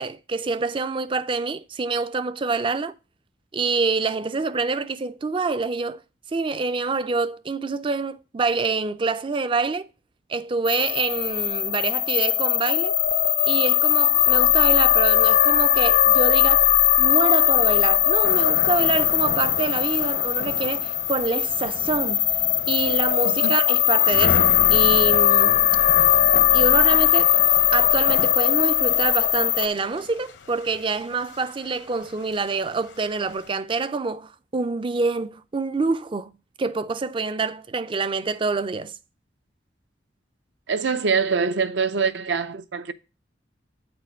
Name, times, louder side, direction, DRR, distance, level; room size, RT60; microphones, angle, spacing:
voice 1, 0.0-2.9 3.5-6.0 6.3-9.9 10.3-12.9 13.5-22.3 22.7-25.7 26.5-27.3 27.7-36.3 36.6-38.9, right 4 dB, 25° right, 0.4 m, -26 dB
sound 1, 10.6-29.7, left 11 dB, 40° left, 0.4 m, -19 dB
sound 2, 18.2-33.5, left 3 dB, 70° left, 0.8 m, -36 dB
voice 2, 40.7-42.9, right 5 dB, 70° right, 0.6 m, -24 dB
8.8 x 4.4 x 5.1 m
head